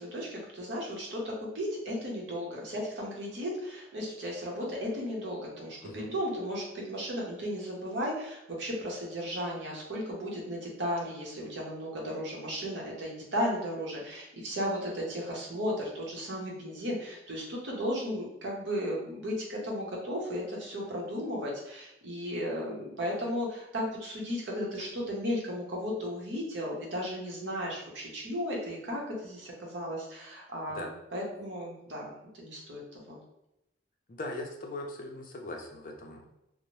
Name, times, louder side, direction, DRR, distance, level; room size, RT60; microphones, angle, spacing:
voice 1, 0.0-33.2, equal, 80° right, -2 dB, 0.8 m, -35 dB
voice 2, 34.1-36.2, left 2 dB, 45° left, 1 dB, 0.4 m, -40 dB
2.7 x 2.0 x 3.0 m, 0.85 s
head